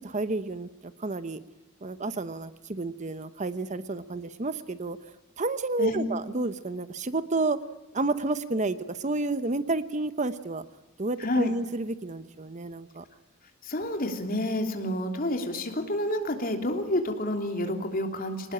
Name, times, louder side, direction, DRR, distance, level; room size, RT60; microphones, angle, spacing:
voice 1, 0.1-1.4 1.8-7.6 7.9-10.6 11.0-13.0, right 2 dB, 35° right, 12 dB, 0.9 m, -30 dB
voice 2, 11.2-11.5 13.6-18.5, left 1 dB, 40° left, 4 dB, 3.3 m, -29 dB
25.0 x 20.0 x 8.8 m, 0.97 s
head